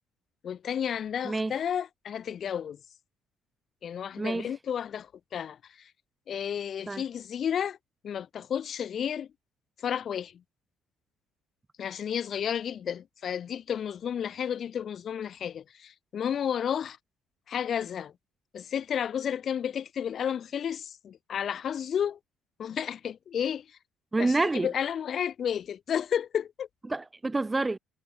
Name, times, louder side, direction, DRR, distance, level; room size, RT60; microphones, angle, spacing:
voice 1, 0.4-2.8 3.8-5.9 6.3-7.8 8.0-9.3 9.8-10.4 11.8-17.0 17.5-18.1 18.5-22.2 22.6-23.8 24.2-24.4 24.6-26.7, left 8 dB, 55° left, 7.0 m, -32 dB
voice 2, 4.2-4.5 6.9-7.0 24.1-24.7 26.8-27.8, right 2 dB, 20° right, 1.3 m, -28 dB
hypercardioid pair, 55°, 0 cm